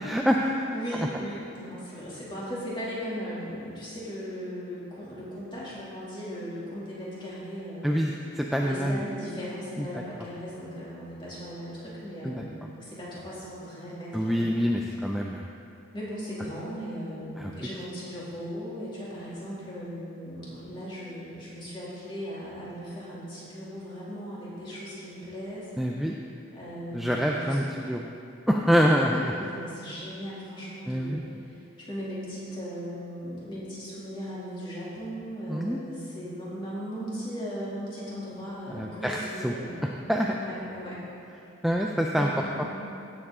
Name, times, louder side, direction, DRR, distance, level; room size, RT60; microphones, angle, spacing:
voice 1, 0.0-0.7 0.9-1.0 7.8-9.0 9.8-9.9 12.2-12.4 14.1-15.4 17.4-17.5 25.8-26.2 26.9-28.0 28.5-29.2 30.9-31.4 35.5-35.8 38.7-39.5 40.1-40.4 41.6-42.3 42.6-42.7, equal, ahead, 0 dB, 0.3 m, -26 dB
voice 2, 0.7-7.9 8.6-14.5 14.8-15.3 15.9-25.7 25.9-26.1 26.5-27.6 28.8-31.6 31.9-39.8 40.3-41.0 42.1-42.7, equal, 25° left, -8 dB, 2.6 m, -38 dB
16.0 x 7.2 x 3.7 m, 2.6 s
head